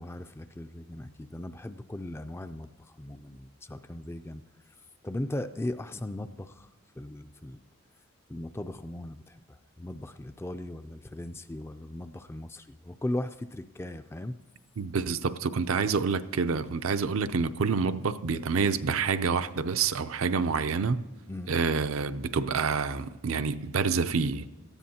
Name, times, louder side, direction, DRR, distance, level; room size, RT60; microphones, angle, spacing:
voice 1, 0.0-4.4 5.0-6.7 7.0-7.6 8.3-14.3 21.3-21.5, left 1 dB, 10° left, 0.3 m, -38 dB
voice 2, 14.8-21.0 21.5-24.5, right 5 dB, 80° right, 0.5 m, -27 dB
18.0 x 13.5 x 2.8 m
head